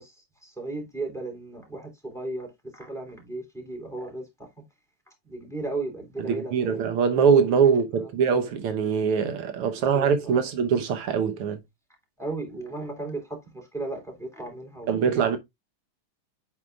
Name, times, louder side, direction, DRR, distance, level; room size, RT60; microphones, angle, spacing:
voice 1, 0.0-4.3 5.2-6.9 7.6-8.1 9.8-10.5 12.2-15.4, right 2 dB, ahead, 3.1 m, -36 dB
voice 2, 6.2-11.6 14.9-15.4, right 6 dB, 85° right, 2.0 m, -23 dB
9.3 x 4.7 x 2.3 m
omnidirectional pair, 2.4 m